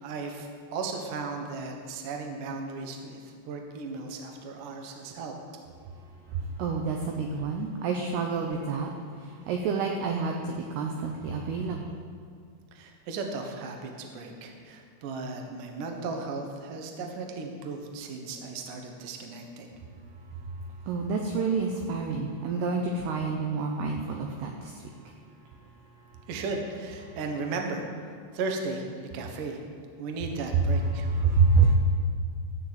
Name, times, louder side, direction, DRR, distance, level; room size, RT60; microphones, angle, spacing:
voice 1, 0.0-5.3 12.7-19.7 26.3-27.9 28.3-28.9 29.1-29.6 30.0-31.1, right 3 dB, 75° right, 3 dB, 1.9 m, -36 dB
voice 2, 6.3-8.9 9.2-11.9 20.9-24.8 30.9-31.7, right 4 dB, 90° right, 2 dB, 2.3 m, -27 dB
13.0 x 6.7 x 7.9 m, 2.1 s
omnidirectional pair, 5.7 m